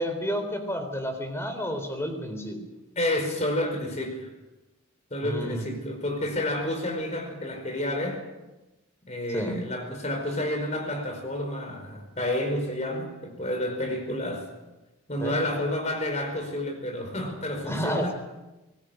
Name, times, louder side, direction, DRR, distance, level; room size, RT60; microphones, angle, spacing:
voice 1, 0.0-2.6 5.2-5.7 9.3-9.6 15.2-15.4 17.7-18.1, equal, 10° left, 6 dB, 3.8 m, -30 dB
voice 2, 2.9-4.3 5.1-8.2 9.1-14.5 15.1-18.1, left 1 dB, 35° left, 5 dB, 5.1 m, -30 dB
29.0 x 20.0 x 6.5 m, 1.0 s
head